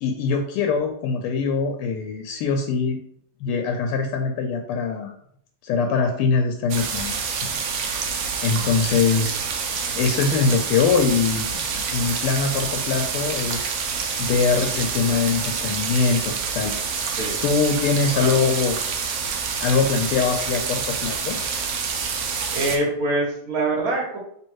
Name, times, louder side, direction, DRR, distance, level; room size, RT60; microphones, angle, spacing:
voice 1, 0.0-3.0 3.4-5.1 5.6-7.5 8.0-9.4 9.7-13.7 14.2-16.7 17.0-17.1 17.4-18.8 19.6-21.4, left 5 dB, 85° left, 4 dB, 1.5 m, -23 dB
sound 1, 6.7-22.8, right 5 dB, 90° right, 0.7 m, -27 dB
voice 2, 22.5-24.2, right 2 dB, 45° right, -2 dB, 1.6 m, -24 dB
3.5 x 3.1 x 4.5 m, 0.68 s
omnidirectional pair, 2.4 m